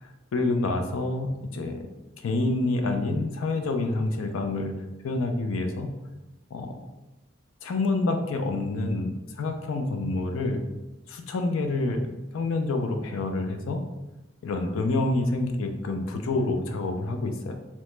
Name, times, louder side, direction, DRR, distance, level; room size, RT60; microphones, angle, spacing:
voice 1, 0.0-1.9 2.2-4.7 5.0-5.9 6.5-6.8 7.6-10.6 11.1-12.1 12.3-13.8 14.4-17.6, left 2 dB, 70° left, 6 dB, 0.4 m, -27 dB
2.9 x 2.1 x 3.1 m, 1.0 s
head